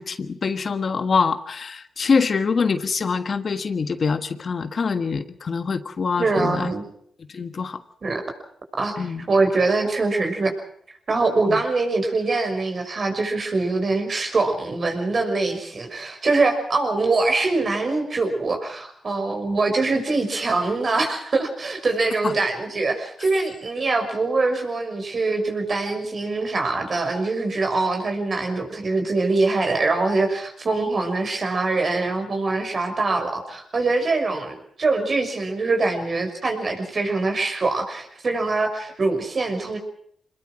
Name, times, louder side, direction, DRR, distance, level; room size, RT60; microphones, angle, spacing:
voice 1, 0.0-6.7 7.3-7.8 9.0-9.3 11.5-11.6 22.2-22.3, left 5 dB, 55° left, 10 dB, 1.5 m, -24 dB
voice 2, 6.2-6.8 8.0-8.2 8.8-10.5 11.1-39.8, right 3 dB, 50° right, 5 dB, 6.1 m, -23 dB
24.5 x 20.5 x 6.2 m, 0.66 s
supercardioid pair, 55°, 0 cm